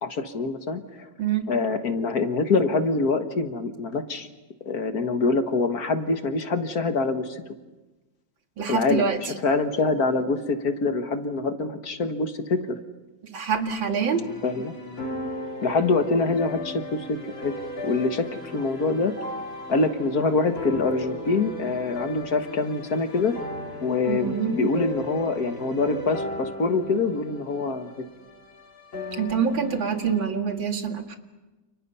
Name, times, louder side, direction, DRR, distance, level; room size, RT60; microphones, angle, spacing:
voice 1, 0.0-1.1 1.5-4.3 4.7-7.4 8.7-12.8 14.4-14.7 15.6-17.6 17.8-19.1 19.7-23.4 23.8-27.9, left 3 dB, 55° left, 7 dB, 1.9 m, -25 dB
voice 2, 8.6-9.2 13.3-14.3 24.1-24.6 29.1-31.2, right 6 dB, 85° right, 5 dB, 2.8 m, -25 dB
sound 1, 14.1-30.3, left 2 dB, 80° left, 4.7 m, -37 dB
30.0 x 29.5 x 5.6 m, 1.1 s
omnidirectional pair, 2.1 m